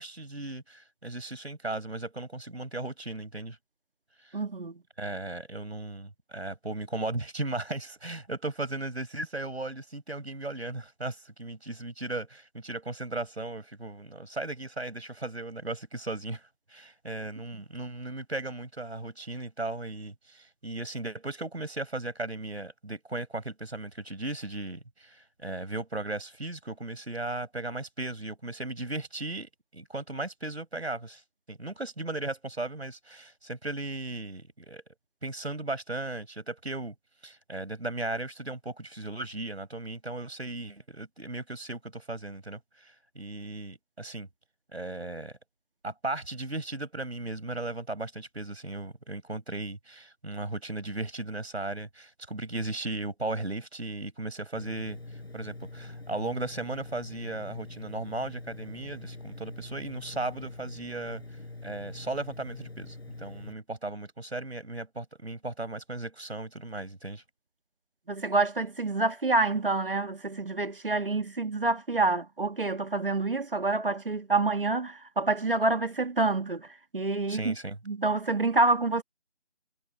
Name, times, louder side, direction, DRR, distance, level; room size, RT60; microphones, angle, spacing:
voice 1, 0.0-3.6 4.2-4.4 5.0-16.4 16.7-31.2 31.5-34.8 35.2-36.9 37.2-44.3 44.7-45.3 45.8-61.2 61.6-67.2 77.3-77.8, right 2 dB, 75° right, 7.4 m, -36 dB
voice 2, 4.3-4.8 68.1-76.7 76.9-77.5 77.9-79.0, right 3 dB, 55° right, 2.0 m, -27 dB
Engine, 54.5-63.5, left 2 dB, 70° left, 5.3 m, -44 dB
figure-of-eight pair, 175°, 33 cm